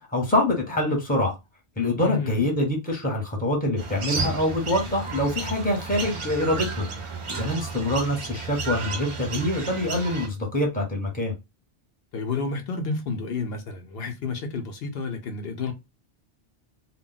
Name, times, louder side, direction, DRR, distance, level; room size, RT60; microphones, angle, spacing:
voice 1, 0.1-1.3 1.8-6.9 7.4-11.3, left 1 dB, 10° left, 0.8 m, -25 dB
voice 2, 2.0-2.5 12.1-15.7, left 4 dB, 75° left, 0.8 m, -30 dB
sound 1, 3.8-10.3, right 4 dB, 40° right, 0.5 m, -32 dB
2.1 x 2.1 x 3.8 m
omnidirectional pair, 1.0 m